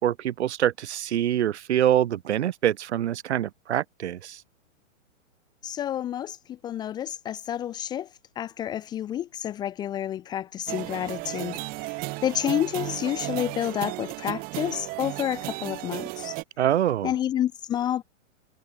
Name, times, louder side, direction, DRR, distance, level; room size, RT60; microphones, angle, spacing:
voice 1, 0.0-4.4 16.6-17.1, right 11 dB, 55° right, 1.8 m, -25 dB
voice 2, 5.6-8.1 8.4-11.9 12.2-16.4 17.0-18.0, left 11 dB, 10° left, 1.1 m, -29 dB
sound 1, 10.7-16.4, right 24 dB, 20° right, 2.8 m, -34 dB
hypercardioid pair, 170°, 39 cm